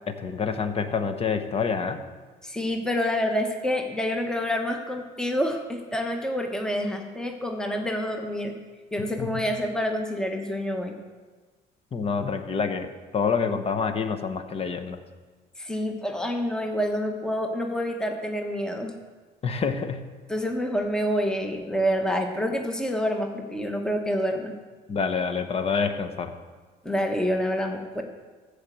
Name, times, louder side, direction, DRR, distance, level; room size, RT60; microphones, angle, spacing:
voice 1, 0.2-2.0 9.2-9.3 11.9-12.9 13.1-15.0 19.4-20.0 24.9-26.3, left 5 dB, 35° left, 8 dB, 1.1 m, -27 dB
voice 2, 2.4-8.5 8.9-11.0 15.6-19.0 20.3-24.5 26.8-28.0, equal, 5° left, 4 dB, 1.2 m, -27 dB
14.5 x 5.1 x 7.5 m, 1.4 s
cardioid pair, 110°, 17 cm